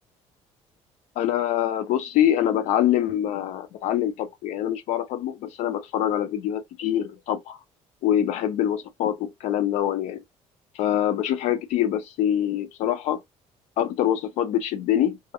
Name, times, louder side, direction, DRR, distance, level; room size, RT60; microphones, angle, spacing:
voice 1, 1.2-7.6 8.0-10.2 10.7-13.2 13.8-15.3, left 11 dB, 70° left, 0.5 m, -25 dB
2.4 x 2.0 x 2.7 m
cardioid pair, 170°, 12 cm